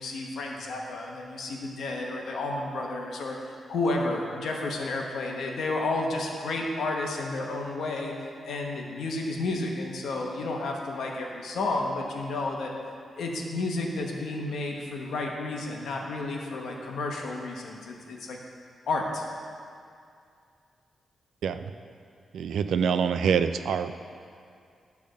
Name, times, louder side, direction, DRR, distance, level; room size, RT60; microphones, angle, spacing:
voice 1, 0.0-12.7 13.2-18.4 18.9-19.3, left 2 dB, 75° left, 0 dB, 1.0 m, -31 dB
voice 2, 22.3-23.9, right 7 dB, 85° right, 10 dB, 0.3 m, -25 dB
10.0 x 3.5 x 6.3 m, 2.3 s
wide cardioid pair, 175°, 0 cm